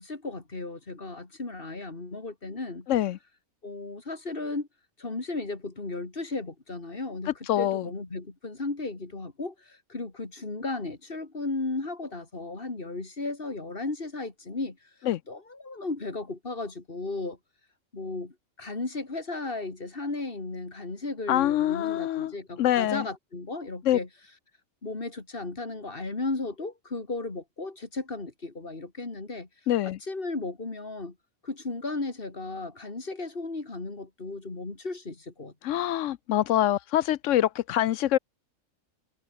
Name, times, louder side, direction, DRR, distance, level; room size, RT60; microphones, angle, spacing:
voice 1, 0.0-2.9 3.6-4.7 5.0-14.9 15.3-17.4 17.9-24.1 24.8-29.5 29.8-31.2 31.4-35.8, left 3 dB, 40° left, 3.0 m, -35 dB
voice 2, 7.5-7.8 15.1-15.2 21.3-22.3 22.6-23.0 23.9-24.0 29.7-30.0 35.6-38.2, left 12 dB, 70° left, 0.9 m, -25 dB
omnidirectional pair, 1.4 m